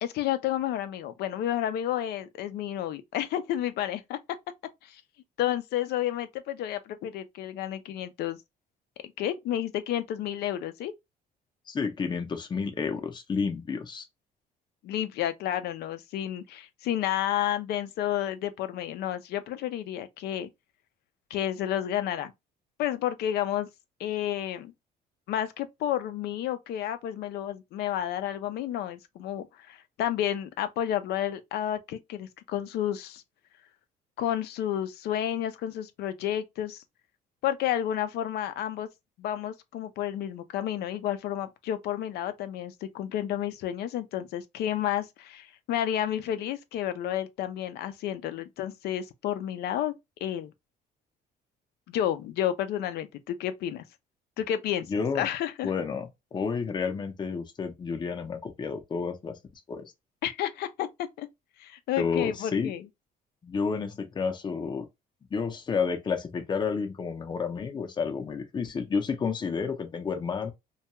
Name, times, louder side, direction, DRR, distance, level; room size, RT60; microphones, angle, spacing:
voice 1, 0.0-4.2 4.8-5.0 5.4-8.4 9.2-10.9 14.8-20.5 21.3-22.3 22.8-23.7 24.0-24.7 25.3-33.2 34.2-36.8 37.4-38.9 39.2-49.9 50.2-50.5 51.9-53.8 54.4-55.7 60.2-61.3 61.6-62.9, left 11 dB, 70° left, 0.5 m, -31 dB
voice 2, 11.7-14.0 54.9-55.3 55.6-59.3 59.7-59.9 62.0-62.7 63.4-64.9 65.3-70.5, left 5 dB, 25° left, 0.6 m, -30 dB
2.3 x 2.2 x 2.8 m
cardioid pair, 110°, 17 cm